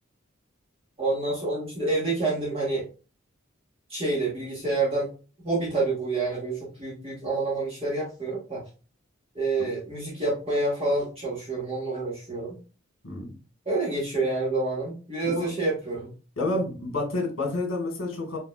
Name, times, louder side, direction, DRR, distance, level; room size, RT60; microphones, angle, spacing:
voice 1, 1.0-2.8 3.9-5.1 5.4-8.6 9.3-12.6 13.7-16.1 16.5-16.6, right 2 dB, 30° right, -7 dB, 2.1 m, -28 dB
voice 2, 16.4-18.4, left 2 dB, 70° left, 2 dB, 1.6 m, -29 dB
5.7 x 3.8 x 2.3 m, 0.34 s
head